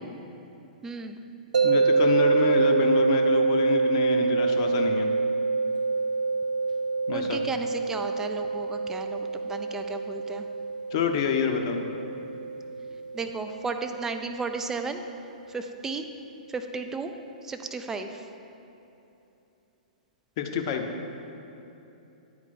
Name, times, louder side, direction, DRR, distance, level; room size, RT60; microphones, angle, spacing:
voice 1, 0.8-1.2 7.1-10.5 13.1-15.0 15.5-16.1 16.5-17.1 17.4-18.3, right 4 dB, 10° right, 6 dB, 0.3 m, -34 dB
sound 1, 1.5-14.6, right 4 dB, 70° right, 0.5 m, -26 dB
voice 2, 1.6-5.1 7.1-7.4 10.9-11.8 20.4-20.9, left 6 dB, 40° left, 4 dB, 0.6 m, -27 dB
9.4 x 4.4 x 4.3 m, 2.9 s
figure-of-eight pair, 110°, 4 cm